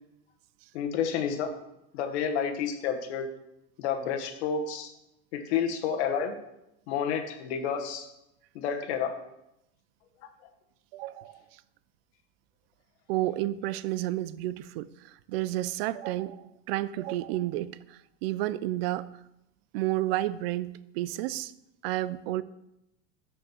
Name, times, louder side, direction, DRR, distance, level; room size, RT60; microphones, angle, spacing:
voice 1, 0.7-1.5 1.9-3.3 3.8-4.9 5.3-6.3 6.9-8.1 8.5-9.1, left 7 dB, 85° left, 5 dB, 1.4 m, -30 dB
voice 2, 10.9-11.4 13.1-19.1 19.7-21.5 21.8-22.4, right 15 dB, 65° right, 17 dB, 0.5 m, -31 dB
6.9 x 6.3 x 6.3 m, 0.86 s
cardioid pair, 180°, 33 cm